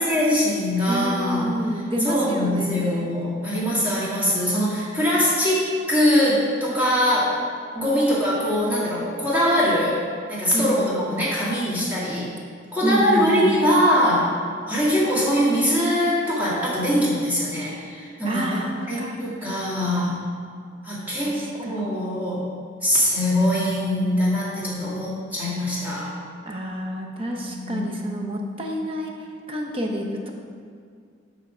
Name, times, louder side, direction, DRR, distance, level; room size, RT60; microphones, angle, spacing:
voice 1, 0.0-1.5 2.0-7.4 7.7-10.0 10.3-12.3 12.7-14.4 14.7-18.6 18.9-20.2 20.8-22.4 22.8-26.2 27.5-27.9, equal, 10° right, -8 dB, 1.9 m, -22 dB
voice 2, 0.9-3.1 10.5-11.1 12.8-13.5 18.2-19.6 21.2-21.9 26.5-29.1 29.5-30.3, equal, 30° right, 1 dB, 0.8 m, -28 dB
5.9 x 5.7 x 4.9 m, 2.2 s
head